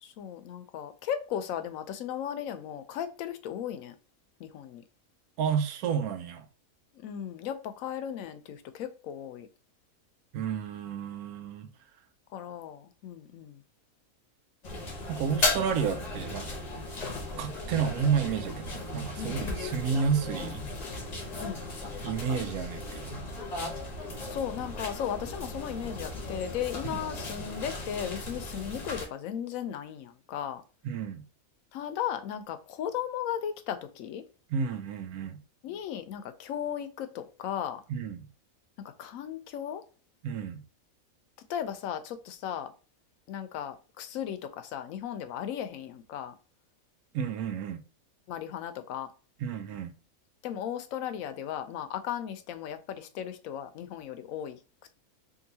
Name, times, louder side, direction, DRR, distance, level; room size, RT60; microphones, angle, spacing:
voice 1, 0.0-4.0 4.4-4.8 6.9-9.5 12.3-13.6 19.2-19.6 21.4-21.6 24.3-30.6 31.7-34.2 35.6-37.8 38.8-39.8 41.5-42.7 43.3-46.3 48.3-49.1 50.4-54.6, left 9 dB, 75° left, 0.9 m, -36 dB
voice 2, 5.4-6.5 10.3-11.7 15.1-16.5 17.4-20.7 22.0-23.3 26.8-27.0 30.8-31.2 34.5-35.4 37.9-38.3 40.2-40.6 47.1-47.8 49.4-49.9, right 7 dB, 90° right, 1.1 m, -31 dB
sound 1, 14.6-29.1, left 2 dB, 35° left, 0.7 m, -36 dB
3.7 x 2.6 x 2.7 m
omnidirectional pair, 1.5 m